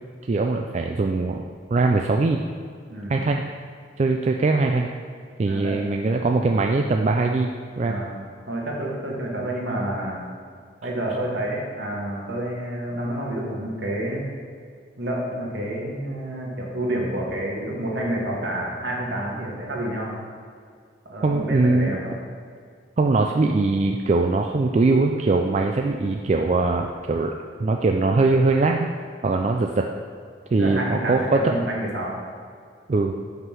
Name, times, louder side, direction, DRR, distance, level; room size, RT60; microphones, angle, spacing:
voice 1, 0.3-1.5 1.7-2.4 3.1-3.4 4.0-4.9 5.4-8.0 21.2-22.0 23.0-27.3 27.6-28.9 29.2-29.9 30.5-31.4 32.9-33.1, right 3 dB, 40° right, 2 dB, 0.3 m, -21 dB
voice 2, 2.9-3.3 5.4-5.7 7.8-8.1 8.5-10.2 10.8-14.2 15.0-20.1 21.0-22.1 30.6-32.2, right 1 dB, 70° right, -3 dB, 1.7 m, -29 dB
5.7 x 5.6 x 6.1 m, 2.1 s
head